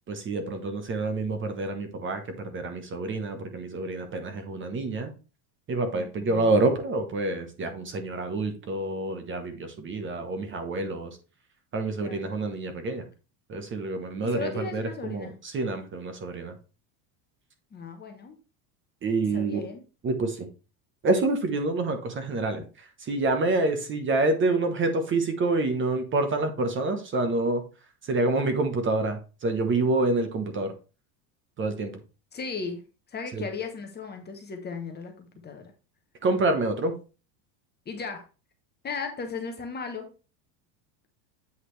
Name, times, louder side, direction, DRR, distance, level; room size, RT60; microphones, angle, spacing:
voice 1, 0.1-5.1 5.7-11.2 11.7-13.0 13.5-16.5 19.0-19.6 20.0-20.5 21.0-22.6 23.0-27.6 28.1-30.7 31.6-32.0 33.3-33.4 36.2-36.9, right 2 dB, 25° right, 7 dB, 1.0 m, -27 dB
voice 2, 5.9-6.5 12.0-12.3 14.2-15.3 17.7-18.4 19.3-19.8 32.3-32.8 33.1-35.7 37.9-38.3 38.8-40.1, left 5 dB, 20° left, 5 dB, 1.0 m, -36 dB
8.2 x 4.9 x 3.3 m, 0.33 s
cardioid pair, 150°, 48 cm